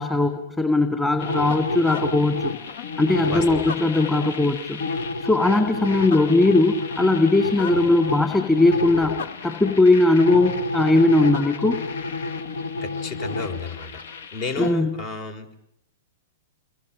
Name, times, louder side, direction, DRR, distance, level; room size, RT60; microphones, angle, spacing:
voice 1, 0.0-2.5 3.0-4.8 5.2-9.1 9.4-11.8 14.6-14.9, left 2 dB, 10° left, 6 dB, 2.5 m, -19 dB
sound 1, 1.2-14.7, left 3 dB, 60° left, 1.3 m, -30 dB
voice 2, 3.3-3.6 12.8-14.0 14.3-15.6, left 4 dB, 45° left, 9 dB, 4.0 m, -32 dB
29.0 x 22.5 x 8.7 m, 0.79 s
figure-of-eight pair, 105°, 0 cm